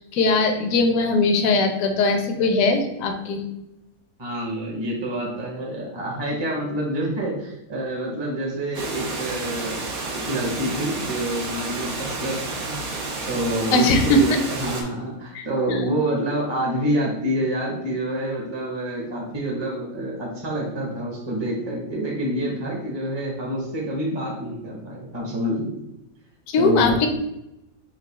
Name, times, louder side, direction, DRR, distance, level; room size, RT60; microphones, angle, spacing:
voice 1, 0.0-3.4 13.7-14.2 15.3-15.4 15.8-15.9 26.5-27.1, left 3 dB, 70° left, 5 dB, 1.0 m, -20 dB
voice 2, 4.2-9.8 10.1-12.7 13.3-25.8 26.6-27.0, right 1 dB, 25° right, -2 dB, 0.7 m, -27 dB
Water, 8.7-14.8, right 3 dB, 75° right, 1.3 m, -31 dB
4.5 x 2.4 x 4.0 m, 0.87 s
omnidirectional pair, 1.5 m